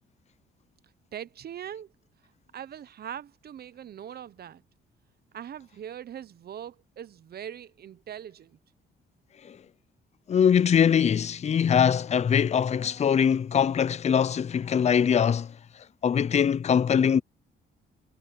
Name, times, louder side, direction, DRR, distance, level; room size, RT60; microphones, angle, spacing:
voice 1, 1.1-1.9 2.5-4.6 5.3-8.6, right 9 dB, 50° right, 0.8 m, -41 dB
voice 2, 10.3-15.5 16.0-17.2, left 7 dB, 35° left, 0.5 m, -22 dB
cardioid pair, 90°, 20 cm